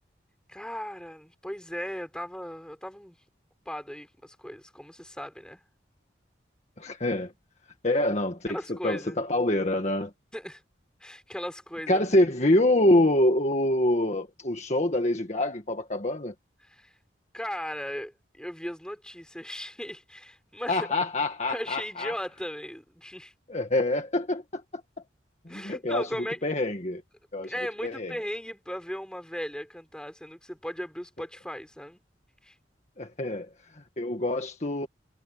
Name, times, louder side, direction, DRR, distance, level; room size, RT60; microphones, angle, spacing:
voice 1, 0.5-3.2 3.6-5.6 8.5-9.2 10.3-10.6 11.0-12.0 16.8-16.9 17.3-20.9 21.5-23.3 25.5-26.4 27.4-32.0 32.4-32.5, equal, 5° left, 5.0 m, -37 dB
voice 2, 6.8-7.3 7.8-10.1 11.9-16.3 20.7-22.2 23.5-25.0 25.4-27.0 27.3-27.5 27.8-28.2 33.0-34.9, left 1 dB, 40° left, 1.8 m, -26 dB
head